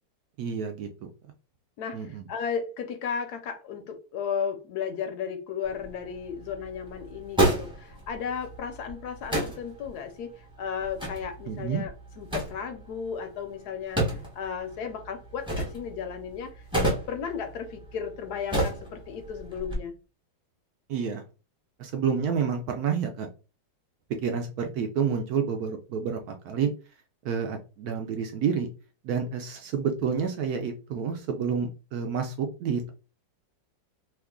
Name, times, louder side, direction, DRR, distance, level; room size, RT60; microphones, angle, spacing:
voice 1, 0.4-1.1 1.9-2.3 11.5-11.8 20.9-21.2 21.8-23.3 24.2-26.7 27.2-28.7 29.0-32.9, right 6 dB, 75° right, 0.9 m, -29 dB
voice 2, 1.8-16.6 17.1-19.9, left 7 dB, 70° left, 0.9 m, -34 dB
sound 1, 5.6-19.7, right 1 dB, 5° right, 0.6 m, -33 dB
3.0 x 2.4 x 3.5 m
omnidirectional pair, 2.0 m